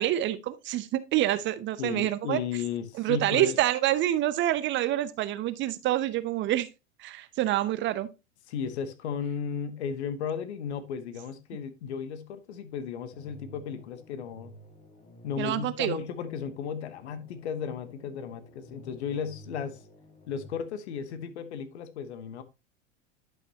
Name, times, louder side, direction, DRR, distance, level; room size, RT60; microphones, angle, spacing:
voice 1, 0.0-2.4 3.0-6.7 7.0-8.1 15.4-16.0, right 14 dB, 30° right, 0.7 m, -27 dB
voice 2, 1.8-3.6 8.5-14.5 15.2-19.8 20.3-22.4, left 7 dB, 65° left, 1.2 m, -35 dB
sound 1, 13.1-20.6, equal, 20° left, 1.8 m, -52 dB
11.0 x 5.7 x 2.9 m
figure-of-eight pair, 85°, 36 cm